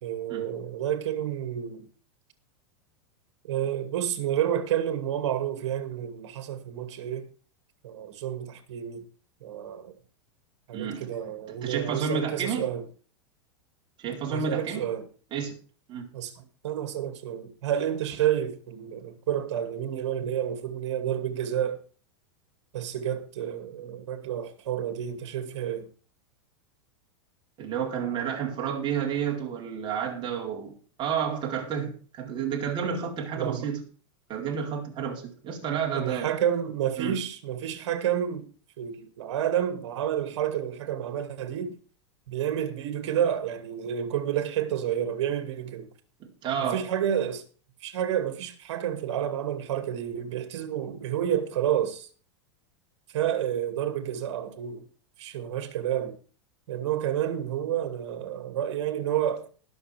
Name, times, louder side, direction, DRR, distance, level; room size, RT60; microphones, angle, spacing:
voice 1, 0.0-1.9 3.4-7.3 7.8-9.0 9.4-9.9 10.7-12.9 14.3-15.1 16.1-21.8 22.7-25.9 33.3-33.7 36.0-38.5 38.8-41.7 42.3-45.9 46.6-47.4 47.8-52.1 53.1-54.9 55.2-56.2 56.7-59.5, right 10 dB, 70° right, 2.4 m, -30 dB
voice 2, 10.7-11.1 11.5-12.7 14.0-14.9 15.3-15.6 15.9-16.1 27.6-33.8 34.3-36.3 37.0-37.2 46.2-46.8, right 7 dB, 30° right, 4.1 m, -31 dB
20.0 x 7.0 x 3.5 m
supercardioid pair, 130°, 15 cm